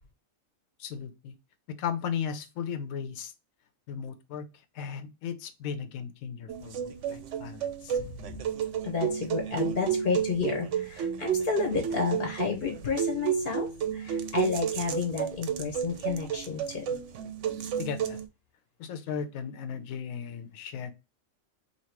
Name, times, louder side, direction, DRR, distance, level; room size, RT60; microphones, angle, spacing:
voice 1, 0.8-1.3 1.8-3.3 3.9-4.5 4.7-8.0 17.8-18.2 18.8-20.9, left 7 dB, 80° left, 1.0 m, -36 dB
sound 1, 6.5-18.2, right 8 dB, 65° right, 0.8 m, -32 dB
voice 2, 8.8-13.7 13.9-16.8, left 5 dB, 45° left, 0.8 m, -31 dB
2.9 x 2.7 x 4.3 m
omnidirectional pair, 1.5 m